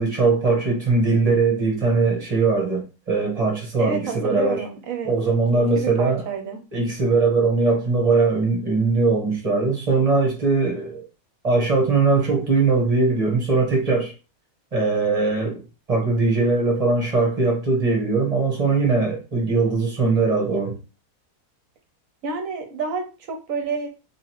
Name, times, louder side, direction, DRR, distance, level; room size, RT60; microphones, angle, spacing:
voice 1, 0.0-4.6 5.1-6.2 6.7-11.0 11.4-14.1 14.7-15.6 15.9-20.8, right 3 dB, 25° right, 1.2 m, -20 dB
voice 2, 3.8-5.1 5.5-6.6 22.2-23.9, right 5 dB, 60° right, 1.1 m, -29 dB
3.7 x 3.5 x 3.0 m
omnidirectional pair, 1.7 m